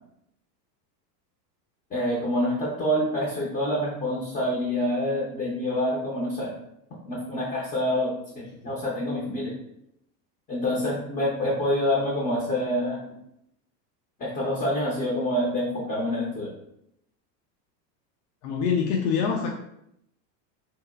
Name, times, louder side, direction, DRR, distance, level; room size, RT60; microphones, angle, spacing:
voice 1, 1.9-6.5 7.1-8.1 8.3-9.5 10.5-13.0 14.2-16.5, left 1 dB, 20° left, -5 dB, 0.5 m, -26 dB
voice 2, 18.4-19.5, left 6 dB, 70° left, 1 dB, 0.5 m, -25 dB
2.9 x 2.0 x 2.2 m, 0.77 s
supercardioid pair, 115°, 50 cm